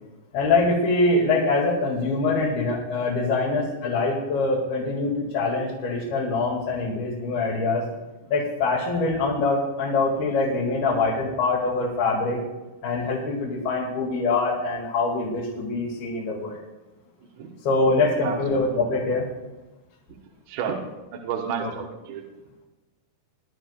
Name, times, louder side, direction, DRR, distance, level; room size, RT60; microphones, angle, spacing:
voice 1, 0.3-7.9 8.3-12.4 12.8-16.6 17.7-19.3, left 3 dB, 60° left, -5 dB, 3.7 m, -24 dB
voice 2, 18.2-18.7 20.1-20.2 20.5-20.8 21.1-22.2, right 6 dB, 70° right, 0 dB, 3.2 m, -31 dB
23.5 x 12.0 x 2.4 m, 1.1 s
omnidirectional pair, 5.6 m